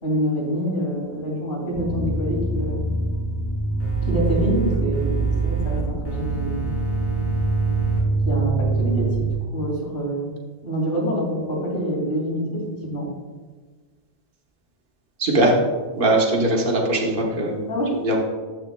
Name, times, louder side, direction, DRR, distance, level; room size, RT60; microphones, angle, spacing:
voice 1, 0.0-2.9 4.0-6.7 8.2-10.3 10.6-13.1 17.7-18.2, equal, 60° left, -4 dB, 2.6 m, -26 dB
sound 1, 1.7-9.3, right 3 dB, 85° left, 1.5 m, -25 dB
sound 2, 3.8-5.8 6.0-8.0, right 6 dB, 10° left, 2.0 m, -27 dB
voice 2, 15.2-15.5 16.0-17.6 18.0-18.2, right 2 dB, 55° right, 0 dB, 1.3 m, -20 dB
12.5 x 6.2 x 2.2 m, 1.4 s
omnidirectional pair, 1.1 m